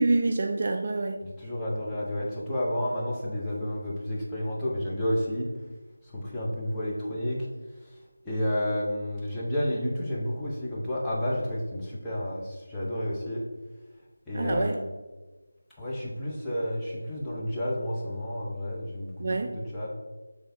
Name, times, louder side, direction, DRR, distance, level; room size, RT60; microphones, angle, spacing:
voice 1, 0.0-1.2 14.3-14.8 19.2-19.5, right 2 dB, 40° right, 4 dB, 0.4 m, -26 dB
voice 2, 1.2-5.5 6.1-7.5 8.2-13.4 14.3-14.8 15.8-19.9, left 1 dB, 5° left, -9 dB, 0.9 m, -31 dB
6.8 x 3.3 x 4.4 m, 1.2 s
figure-of-eight pair, 165°, 0 cm